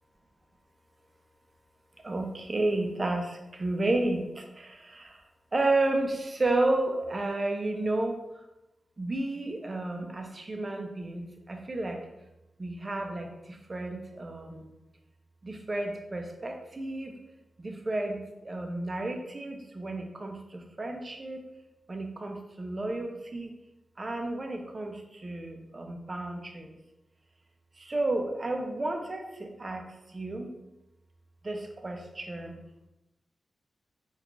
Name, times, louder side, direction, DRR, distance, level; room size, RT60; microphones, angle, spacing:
voice 1, 2.0-5.2 5.5-8.2 9.0-12.0 12.6-14.7 15.4-17.2 17.6-21.4 21.9-23.5 24.0-26.8 27.8-30.5 31.4-32.6, right 2 dB, 30° right, 3 dB, 0.4 m, -32 dB
3.7 x 2.2 x 2.9 m, 0.95 s
wide cardioid pair, 150°, 0 cm